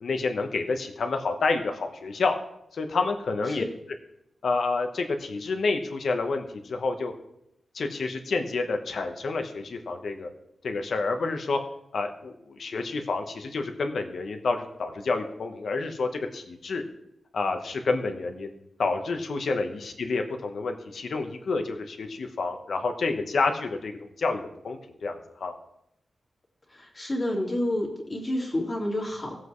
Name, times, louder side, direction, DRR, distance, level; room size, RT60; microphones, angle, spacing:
voice 1, 0.0-2.3 2.7-3.6 4.4-7.1 7.7-10.3 10.6-11.6 11.9-16.8 17.3-18.5 18.8-25.5, left 3 dB, 60° left, 5 dB, 1.1 m, -29 dB
voice 2, 26.7-29.3, left 1 dB, 25° left, -2 dB, 2.4 m, -29 dB
17.0 x 7.8 x 3.2 m, 0.81 s
wide cardioid pair, 175°, 0 cm